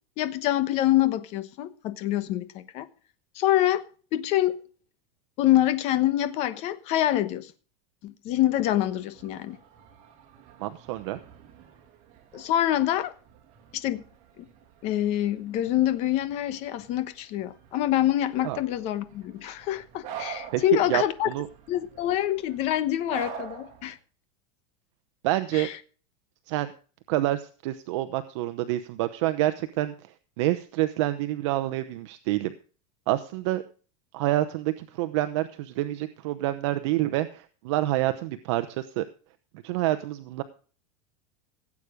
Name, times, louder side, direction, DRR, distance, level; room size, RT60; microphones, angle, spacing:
voice 1, 0.2-2.9 3.3-4.6 5.4-7.5 8.0-9.6 12.3-13.1 13.7-14.0 14.8-21.3 21.7-24.0 25.5-25.7, left 13 dB, 40° left, 1.1 m, -26 dB
sound 1, 8.5-24.0, right 8 dB, 40° right, 2.5 m, -46 dB
voice 2, 10.6-11.2 18.4-18.6 20.5-20.6 20.9-21.5 25.2-25.7 26.5-26.7 27.1-32.5 33.1-33.6 34.1-39.0 39.6-40.4, right 15 dB, 55° right, 0.9 m, -27 dB
17.0 x 8.4 x 5.1 m
supercardioid pair, 165°, 17 cm